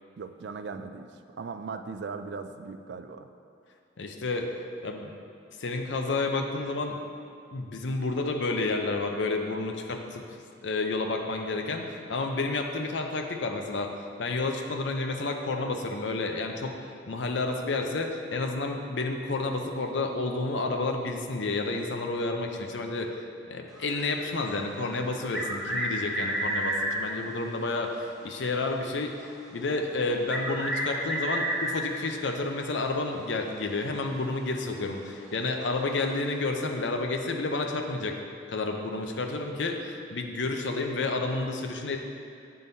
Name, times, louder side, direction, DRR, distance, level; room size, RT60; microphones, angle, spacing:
voice 1, 0.2-1.1 1.4-3.3, right 4 dB, 60° right, 8 dB, 0.3 m, -38 dB
voice 2, 4.0-4.5 4.8-5.1 5.6-7.0 7.5-10.2 10.6-13.9 14.2-16.8 17.1-23.1 23.5-38.1 38.5-42.0, left 3 dB, 75° left, 4 dB, 0.6 m, -30 dB
sound 1, 23.8-27.1 29.5-29.6 30.3-32.0 33.6-33.7 34.1-34.2 35.9-36.0, right 1 dB, ahead, 0.8 m, -31 dB
9.0 x 3.8 x 4.0 m, 2.4 s
head